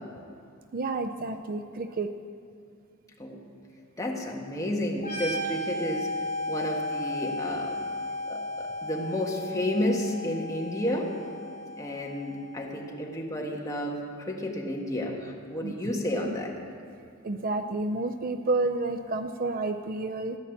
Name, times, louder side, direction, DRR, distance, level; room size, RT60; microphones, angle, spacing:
voice 1, 0.7-2.1 15.6-15.7 16.3-16.4 17.2-20.4, right 2 dB, 40° right, 8 dB, 0.5 m, -30 dB
voice 2, 4.0-6.1 6.5-7.8 8.2-11.1 11.7-16.5, left 1 dB, 15° left, -1 dB, 1.6 m, -31 dB
sound 1, 5.0-12.5, left 1 dB, 35° left, 4.1 m, -35 dB
15.0 x 9.7 x 7.3 m, 2.3 s
head